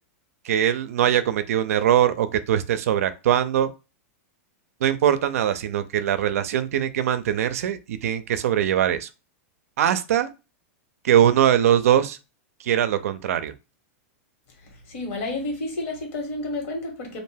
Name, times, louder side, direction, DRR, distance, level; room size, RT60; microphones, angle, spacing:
voice 1, 0.4-3.7 4.8-9.1 9.8-10.3 11.0-12.2 12.6-13.5, right 10 dB, 80° right, 0.4 m, -21 dB
voice 2, 14.9-17.2, left 2 dB, 60° left, 1.4 m, -30 dB
2.5 x 2.2 x 3.2 m
supercardioid pair, 140°, 8 cm